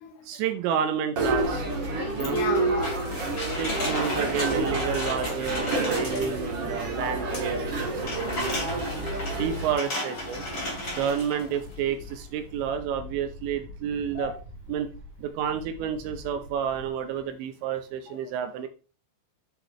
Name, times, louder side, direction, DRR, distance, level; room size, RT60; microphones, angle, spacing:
voice 1, 0.2-1.7 2.1-2.4 3.4-8.9 9.3-10.5 10.9-14.3 14.7-14.9 15.2-18.7, right 8 dB, 80° right, 8 dB, 2.8 m, -30 dB
sound 1, 1.2-9.7, right 2 dB, 50° right, 1.3 m, -29 dB
voice 2, 2.0-3.4 4.0-4.1 9.2-9.3 14.2-14.4 18.1-18.2, left 8 dB, 80° left, 4 dB, 3.3 m, -35 dB
sound 2, 2.8-6.5 7.3-11.7 12.1-12.2, left 1 dB, 35° left, 2.5 m, -34 dB
Wind, 10.1-17.3, left 1 dB, 5° left, 2.5 m, -45 dB
11.0 x 6.7 x 3.1 m, 0.35 s
omnidirectional pair, 5.7 m